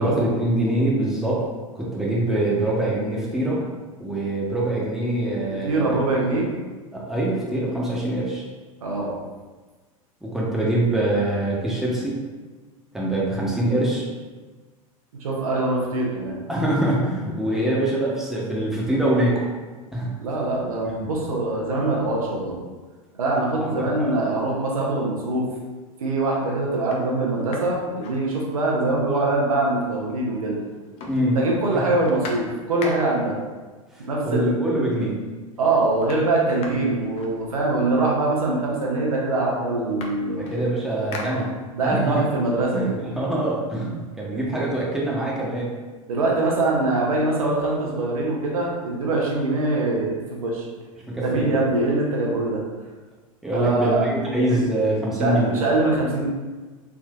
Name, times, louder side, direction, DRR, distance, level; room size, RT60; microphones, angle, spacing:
voice 1, 0.0-1.4 1.7-3.6 4.0-6.2 6.9-8.4 10.2-12.2 12.9-14.0 16.5-19.4 19.9-20.1 23.7-24.2 31.1-31.4 31.7-31.8 33.9-35.2 40.3-41.5 41.8-42.2 42.7-45.7 51.1-51.5 53.4-55.5, right 1 dB, ahead, -6 dB, 0.8 m, -24 dB
voice 2, 5.6-6.5 8.8-9.1 15.2-16.3 20.2-22.6 23.2-25.5 26.0-30.6 31.3-33.4 34.0-34.5 35.6-40.5 41.2-41.4 41.7-43.0 44.3-44.4 46.1-50.6 51.2-52.6 53.5-54.1 54.5-54.6 55.2-56.3, right 2 dB, 75° right, -2 dB, 0.7 m, -23 dB
sound 1, 25.4-25.8 26.3-26.4 26.8-28.9 29.2-29.3 29.5-30.4 30.6-33.4 34.3-34.4 34.8-35.3 35.5-38.0 38.8-38.9 39.2-42.0 42.4-44.1, left 3 dB, 35° left, 0.5 m, -41 dB
3.6 x 2.5 x 2.3 m, 1.3 s
figure-of-eight pair, 85°, 18 cm